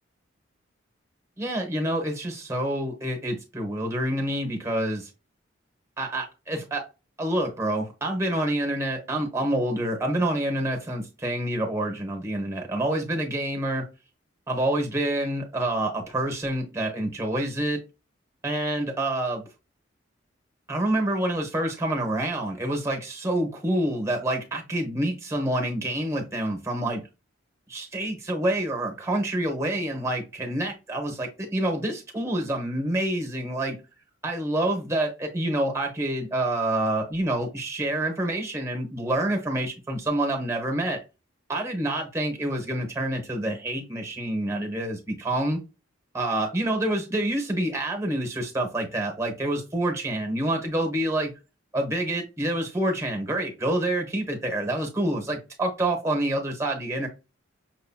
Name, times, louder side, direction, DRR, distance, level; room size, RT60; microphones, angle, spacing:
voice 1, 1.4-5.1 6.0-6.8 7.2-13.8 14.5-17.8 18.4-19.4 20.7-27.0 27.7-33.8 34.2-41.0 41.5-45.6 46.1-51.3 51.7-57.1, right 1 dB, 15° right, 1.0 m, -27 dB
6.1 x 2.8 x 2.3 m
head